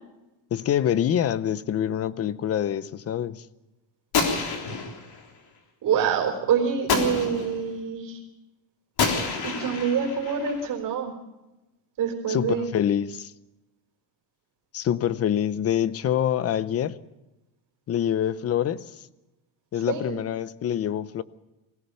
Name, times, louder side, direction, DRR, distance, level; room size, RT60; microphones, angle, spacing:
voice 1, 0.5-3.4 12.3-13.3 14.7-16.9 17.9-18.9 19.7-21.2, left 10 dB, 35° left, 17 dB, 0.6 m, -25 dB
Gunshot gunfire, 4.1-5.2 6.9-7.7 9.0-10.7, left 5 dB, 50° left, 3.8 m, -28 dB
voice 2, 5.8-8.2 9.4-11.1 12.0-12.7 19.9-20.2, right 7 dB, 45° right, 0 dB, 4.1 m, -26 dB
22.5 x 16.5 x 6.9 m, 1.0 s
cardioid pair, 155°, 46 cm